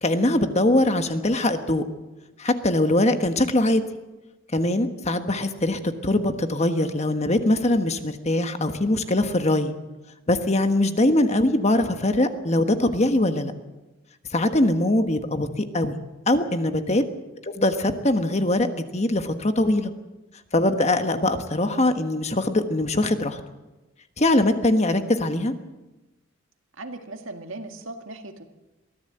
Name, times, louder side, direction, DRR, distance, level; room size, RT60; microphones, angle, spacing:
voice 1, 0.0-1.8 2.4-3.8 4.5-9.7 10.3-13.5 14.3-16.0 16.3-17.0 17.6-19.9 20.5-23.4 24.2-25.5, left 1 dB, 30° left, 8 dB, 1.4 m, -22 dB
voice 2, 26.8-28.4, right 2 dB, 70° right, 5 dB, 2.0 m, -38 dB
23.0 x 15.5 x 7.9 m, 1.1 s
head